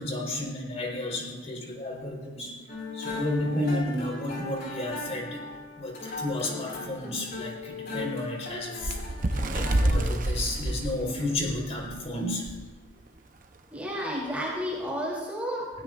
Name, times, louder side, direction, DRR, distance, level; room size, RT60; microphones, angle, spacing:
voice 1, 0.0-2.5 2.9-5.4 5.8-9.0 9.5-12.5, left 1 dB, 40° left, -1 dB, 4.2 m, -32 dB
balalaika-esque, 2.7-10.0, left 3 dB, 60° left, 4.8 m, -38 dB
Bird, 8.8-12.0 12.5-12.6 12.9-13.2 13.9-14.0, right 1 dB, 50° right, 0.8 m, -28 dB
voice 2, 13.7-15.8, equal, 10° right, -5 dB, 3.1 m, -32 dB
21.5 x 16.0 x 2.5 m, 1.2 s
head